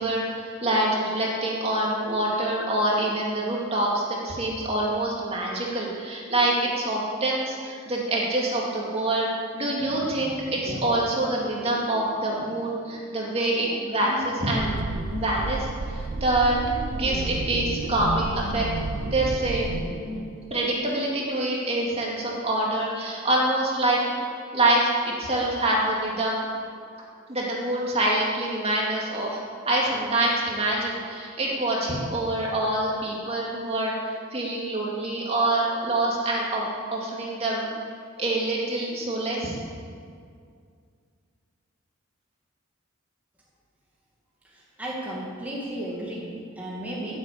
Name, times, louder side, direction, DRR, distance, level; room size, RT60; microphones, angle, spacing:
voice 1, 0.0-14.8 15.2-16.6 16.9-18.7 19.1-19.7 20.5-24.1 24.5-26.5 27.3-33.9 34.3-37.7 38.2-39.6, right 1 dB, 30° right, -3 dB, 2.6 m, -26 dB
sound 1, 9.8-20.2, equal, 90° right, 2.5 m, -37 dB
sound 2, 14.5-19.9, right 3 dB, 55° right, 0.6 m, -33 dB
voice 2, 44.5-47.2, right 1 dB, 5° right, -6 dB, 2.3 m, -34 dB
14.5 x 8.2 x 8.6 m, 2.2 s
head